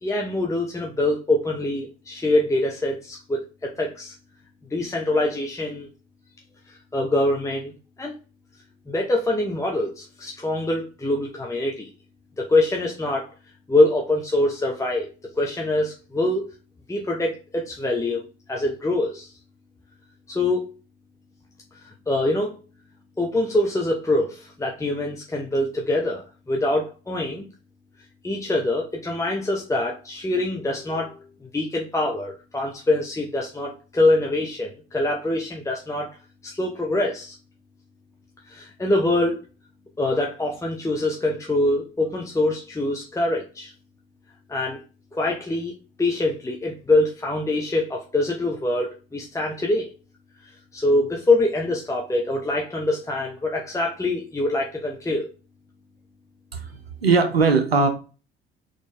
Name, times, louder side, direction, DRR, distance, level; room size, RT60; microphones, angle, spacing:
voice 1, 0.0-4.1 4.7-5.9 6.7-7.7 8.0-8.1 8.9-11.9 12.4-13.3 13.7-15.1 15.3-16.5 16.9-19.3 20.3-20.6 21.8-22.6 23.2-27.5 28.2-31.2 31.5-36.2 36.4-37.4 38.5-39.4 40.0-43.7 44.5-44.8 45.1-45.7 46.0-49.9 50.7-55.3, left 2 dB, 10° left, 0.8 m, -24 dB
voice 2, 56.5-57.9, right 4 dB, 90° right, 0.6 m, -20 dB
4.2 x 3.3 x 3.3 m
figure-of-eight pair, 55°, 30 cm